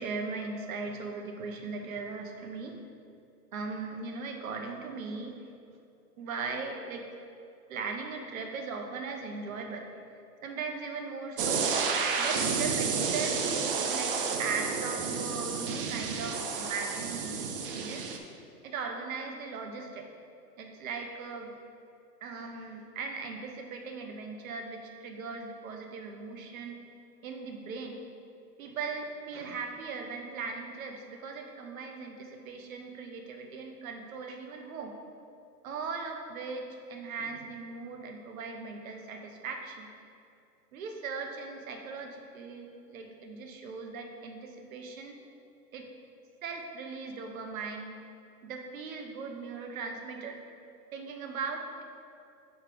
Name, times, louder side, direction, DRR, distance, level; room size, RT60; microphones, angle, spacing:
voice 1, 0.0-2.8 3.5-5.4 6.2-7.1 7.7-9.9 10.4-11.8 12.2-18.1 18.6-20.1 20.6-21.5 22.2-26.8 27.2-28.0 28.6-34.9 35.6-39.9 40.7-45.2 45.7-45.9 46.4-48.0 48.4-50.4 50.9-51.8, right 4 dB, 55° right, 4 dB, 0.9 m, -38 dB
sound 1, 11.4-18.2, right 5 dB, 35° right, 0.5 m, -31 dB
5.8 x 4.7 x 4.6 m, 2.6 s
hypercardioid pair, 135°, 49 cm